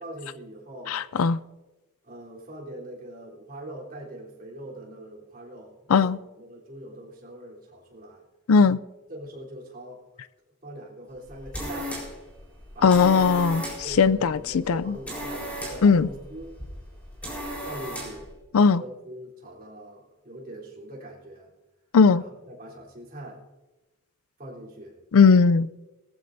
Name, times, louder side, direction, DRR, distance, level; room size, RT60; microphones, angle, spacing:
voice 1, 0.0-1.0 2.0-8.2 9.1-10.0 10.6-12.0 12.7-13.3 13.8-16.5 17.6-18.3 18.5-21.5 22.2-23.4 24.4-25.0, right 1 dB, 40° right, 3.6 m, -42 dB
voice 2, 0.9-1.4 5.9-6.2 8.5-8.8 12.8-15.0 15.8-16.1 18.5-18.8 21.9-22.2 25.1-25.7, left 5 dB, 80° left, 0.4 m, -18 dB
sound 1, 11.2-18.3, equal, 5° left, 4.2 m, -36 dB
20.5 x 14.5 x 2.7 m
head